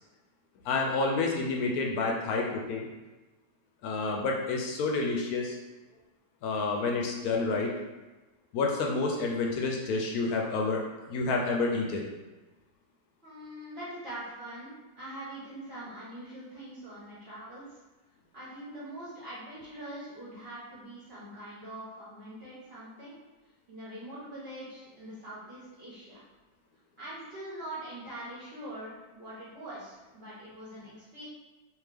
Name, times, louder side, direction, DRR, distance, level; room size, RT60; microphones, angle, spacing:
voice 1, 0.6-2.9 3.8-5.6 6.4-7.7 8.5-12.0, left 3 dB, 75° left, 0 dB, 1.0 m, -29 dB
voice 2, 13.2-17.6 18.3-23.2 23.7-26.2 27.0-31.3, right 1 dB, 45° right, -10 dB, 1.1 m, -43 dB
3.5 x 2.8 x 3.3 m, 1.2 s
omnidirectional pair, 1.7 m